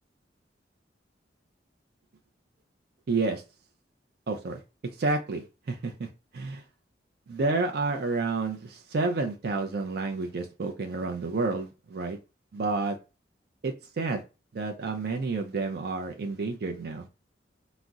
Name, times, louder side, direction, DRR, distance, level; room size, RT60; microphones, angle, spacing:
voice 1, 3.1-3.4 4.3-4.6 5.0-6.6 7.3-12.2 12.5-13.0 13.6-14.2 14.5-17.0, right 3 dB, 55° right, 0.4 m, -30 dB
3.8 x 2.0 x 2.3 m
head